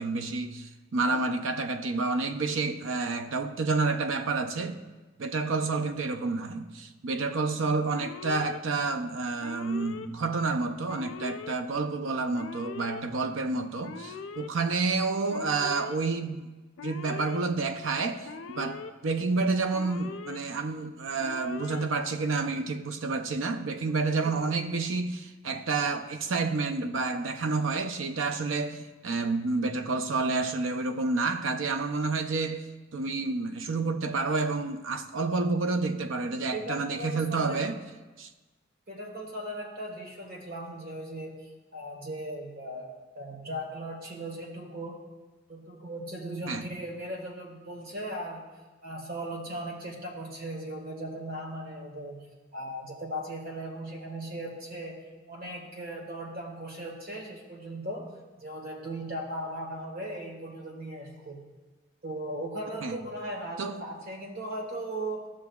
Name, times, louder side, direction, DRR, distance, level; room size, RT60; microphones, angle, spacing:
voice 1, 0.0-4.8 5.2-16.5 16.8-37.8 38.2-38.3 46.5-46.6 62.8-63.0 63.6-63.8, right 3 dB, 80° right, 0.5 m, -29 dB
Alarm, 7.9-8.6 9.4-10.1 10.9-11.5 12.3-13.0 13.8-14.5 15.3-16.0 16.8-17.4 18.2-18.9 19.7-20.4 21.2-21.9, left 5 dB, 85° left, 0.5 m, -41 dB
voice 2, 36.5-37.6 38.9-41.3 41.7-45.0 45.5-48.4 48.8-52.2 52.5-55.0 55.3-58.1 58.4-61.4 62.0-65.2, right 1 dB, 50° right, 1.6 m, -38 dB
14.5 x 6.3 x 2.3 m
head